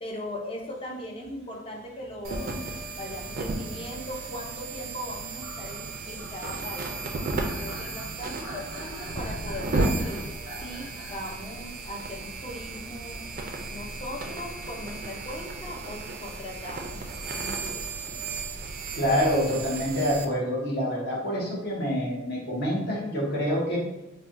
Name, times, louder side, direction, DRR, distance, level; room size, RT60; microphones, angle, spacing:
voice 1, 0.0-2.5 2.9-7.0 7.6-10.3 10.6-13.2 13.7-17.0 17.3-17.8, left 1 dB, 25° left, 0 dB, 0.5 m, -39 dB
sound 1, 0.6-2.8 3.4-4.5 5.2-11.4, equal, 70° left, 1.4 m, -46 dB
sound 2, 2.2-20.3, right 3 dB, 45° right, 0.4 m, -34 dB
voice 2, 18.9-23.8, equal, 55° left, -4 dB, 0.9 m, -26 dB
4.2 x 2.1 x 2.5 m, 0.98 s
head